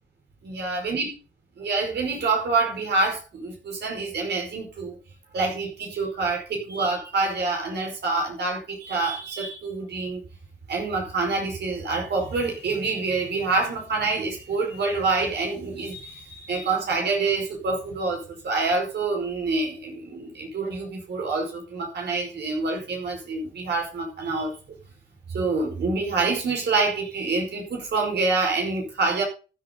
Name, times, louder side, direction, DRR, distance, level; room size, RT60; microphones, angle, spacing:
voice 1, 0.4-1.1 1.6-5.0 5.3-10.2 10.7-24.5 25.3-29.2, right 3 dB, 60° right, 5.3 m, -26 dB
14.5 x 9.2 x 4.0 m
cardioid pair, 90°, 20 cm